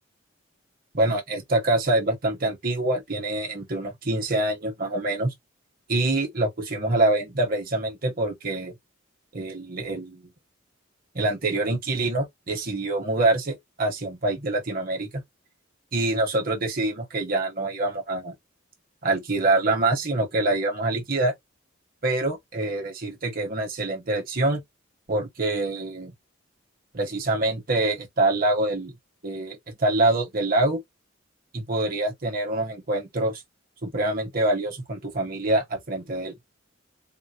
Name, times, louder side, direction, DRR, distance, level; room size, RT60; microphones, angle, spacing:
voice 1, 0.9-5.3 5.9-8.7 9.3-10.3 11.1-15.2 15.9-18.3 19.0-21.3 22.0-24.6 25.1-26.1 26.9-29.0 29.2-30.8 31.5-33.4 33.8-36.4, right 2 dB, 45° right, 1.0 m, -25 dB
3.8 x 2.1 x 2.8 m
head